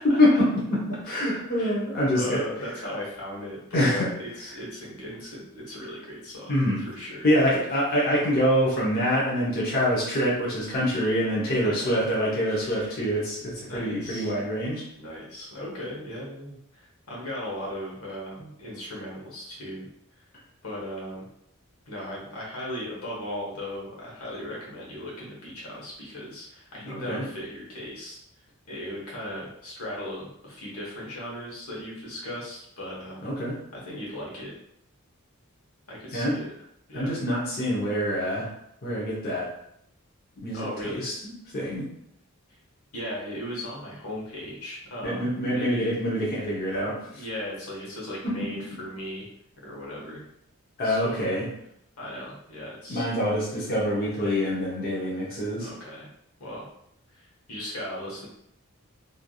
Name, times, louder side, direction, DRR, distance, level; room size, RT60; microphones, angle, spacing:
voice 1, 0.2-2.4 3.7-4.1 6.5-6.8 7.2-14.8 27.1-27.2 33.2-33.6 36.1-36.4 36.9-38.5 38.8-39.5 40.4-41.9 45.0-47.2 48.2-48.5 50.8-51.5 52.9-55.7, equal, 45° left, -6 dB, 0.8 m, -25 dB
voice 2, 1.6-7.3 11.4-11.9 12.4-13.0 13.7-14.3 15.0-19.9 20.6-21.3 21.9-28.2 28.7-33.3 33.7-34.5 35.9-36.5 36.9-37.1 40.5-41.1 42.9-45.9 47.1-49.3 49.6-50.2 50.8-51.2 52.0-53.1 55.6-56.1 56.4-56.7 57.1-58.3, left 1 dB, 80° left, -4 dB, 1.1 m, -37 dB
3.2 x 2.5 x 2.3 m, 0.73 s
head